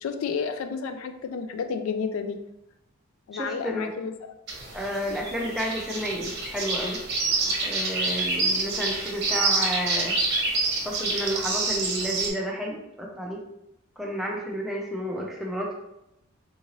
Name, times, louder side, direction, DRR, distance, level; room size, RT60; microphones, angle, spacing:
voice 1, 0.0-2.4 3.3-4.3, left 5 dB, 75° left, 8 dB, 0.3 m, -31 dB
voice 2, 3.3-3.9 4.7-7.0 7.6-10.4 10.8-13.4 14.0-15.7, equal, ahead, -2 dB, 0.4 m, -31 dB
sound 1, 4.5-12.3, right 3 dB, 50° right, 0.8 m, -27 dB
3.7 x 2.6 x 2.9 m, 0.86 s
head